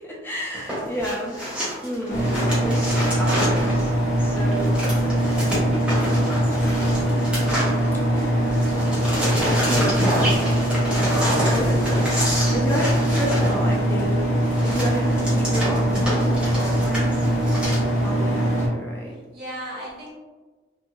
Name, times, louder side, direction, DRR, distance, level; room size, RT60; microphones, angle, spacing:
voice 1, 0.0-1.4 1.8-5.0 6.0-7.3 8.0-8.9 9.5-10.4 11.5-11.8 12.5-14.2 14.6-17.2 18.0-19.1, equal, 10° left, -3 dB, 0.3 m, -31 dB
sound 1, 0.5-8.3 8.5-17.8, equal, 5° right, 0.7 m, -28 dB
sound 2, 2.1-18.7, right 1 dB, 45° left, 0.7 m, -22 dB
voice 2, 19.0-20.1, right 1 dB, 65° right, -6 dB, 1.1 m, -38 dB
2.9 x 2.5 x 2.3 m, 1.3 s
head